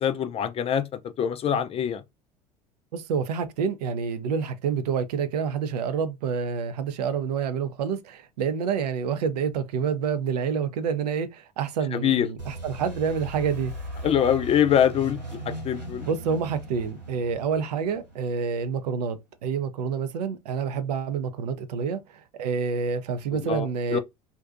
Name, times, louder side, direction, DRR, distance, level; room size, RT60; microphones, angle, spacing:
voice 1, 0.0-0.8 1.2-2.0 11.9-12.3 14.0-15.2 15.5-16.0 23.3-24.0, left 9 dB, 30° left, 0.4 m, -24 dB
voice 2, 2.9-13.7 16.1-24.0, right 6 dB, 70° right, 0.5 m, -28 dB
sound 1, 12.4-19.0, right 1 dB, 90° right, 1.2 m, -38 dB
2.5 x 2.2 x 2.5 m
figure-of-eight pair, 70°, 21 cm